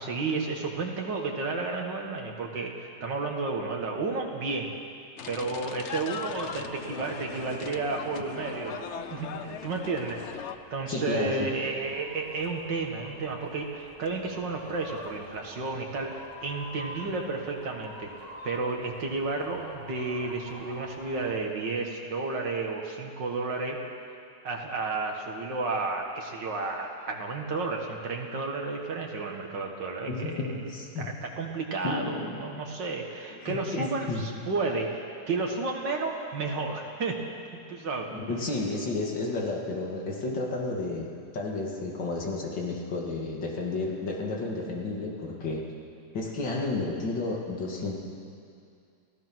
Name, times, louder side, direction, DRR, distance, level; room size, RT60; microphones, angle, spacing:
voice 1, 0.0-4.8 5.3-10.2 10.7-18.1 18.4-23.8 24.4-37.2 37.5-38.1, right 3 dB, 80° right, 1 dB, 2.4 m, -32 dB
sound 1, 5.2-10.6, left 8 dB, 55° left, 0.8 m, -39 dB
sound 2, 6.3-21.4, left 1 dB, 20° left, 2.2 m, -47 dB
voice 2, 10.9-11.5 30.1-31.1 31.8-32.4 33.4-34.2 38.1-41.1 41.3-45.6 46.1-48.0, left 3 dB, 85° left, -2 dB, 3.0 m, -32 dB
29.0 x 16.0 x 6.2 m, 2.4 s
omnidirectional pair, 1.9 m